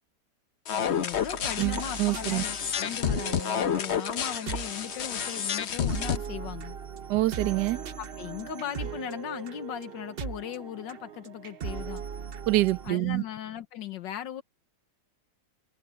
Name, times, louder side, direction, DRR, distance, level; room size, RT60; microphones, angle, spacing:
voice 1, 0.7-6.8 8.0-12.0 12.8-14.4, left 10 dB, 85° left, 1.7 m, -38 dB
sound 1, 0.7-6.2, left 8 dB, 50° left, 0.9 m, -30 dB
sound 2, 1.1-12.9, right 6 dB, 50° right, 0.7 m, -39 dB
voice 2, 1.6-2.4 7.1-7.8 12.5-13.2, right 18 dB, 75° right, 1.1 m, -26 dB
omnidirectional pair, 1.9 m